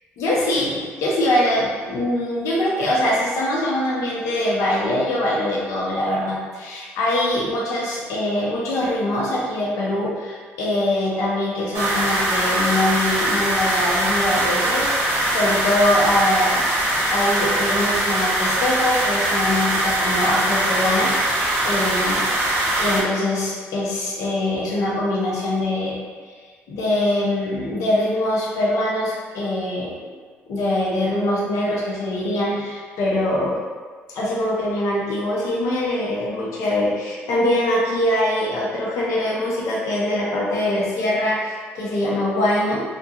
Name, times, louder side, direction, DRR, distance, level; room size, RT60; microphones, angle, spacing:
voice 1, 0.2-16.7 17.0-22.3 22.8-26.0 26.7-29.9 30.5-33.5 34.1-42.8, left 1 dB, 75° left, -4 dB, 0.7 m, -23 dB
sound 1, 11.7-23.0, right 1 dB, 50° right, 0.8 m, -22 dB
2.3 x 2.2 x 2.8 m, 1.5 s
supercardioid pair, 70°, 5 cm